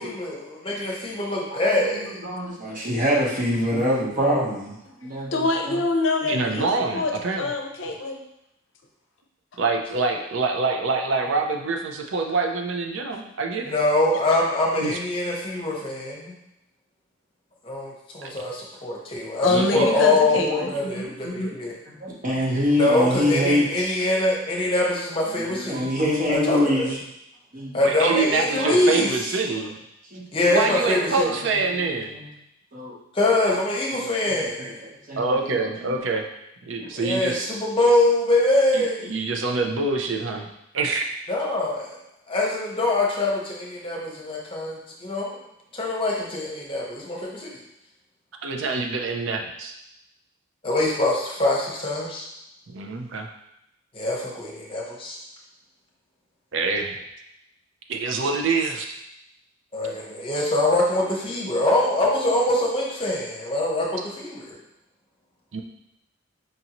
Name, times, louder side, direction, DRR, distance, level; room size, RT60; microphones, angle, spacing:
voice 1, 0.0-2.2 13.7-16.3 17.6-19.5 19.7-21.7 22.8-25.9 26.3-26.9 27.7-29.1 30.3-31.2 33.1-34.7 36.9-39.1 41.3-42.0 42.3-45.3 45.7-47.5 50.6-52.3 53.9-55.2 59.7-64.6, left 1 dB, 25° left, -3 dB, 0.8 m, -24 dB
voice 2, 1.5-5.8 21.6-24.0 25.3-27.0 27.5-28.8 29.5-29.7 30.0-32.3 32.7-33.0 33.5-36.0, left 1 dB, 40° right, -3 dB, 0.9 m, -27 dB
voice 3, 5.3-6.7 6.9-8.2 19.4-21.6, left 2 dB, 65° left, 2 dB, 0.6 m, -25 dB
voice 4, 6.3-7.5 9.6-13.7 14.8-15.0 18.2-18.3 19.5-19.9 27.8-29.7 30.4-32.1 35.2-36.3 36.6-37.5 38.7-40.5 40.7-41.1 48.4-49.7 52.7-53.3 56.5-57.0 57.9-58.9 65.5-65.6, right 3 dB, 70° right, 3 dB, 0.5 m, -25 dB
5.2 x 2.6 x 2.9 m, 0.83 s
head